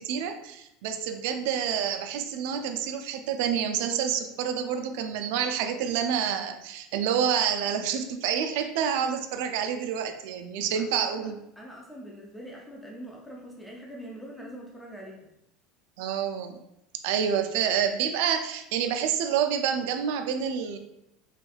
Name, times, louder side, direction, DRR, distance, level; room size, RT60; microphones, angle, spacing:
voice 1, 0.0-11.4 16.0-16.6 17.0-20.8, right 8 dB, 70° right, 7 dB, 0.4 m, -28 dB
voice 2, 10.7-11.3 11.6-15.3, equal, ahead, -3 dB, 0.5 m, -43 dB
3.2 x 3.1 x 2.3 m, 0.83 s
cardioid pair, 155°, 0 cm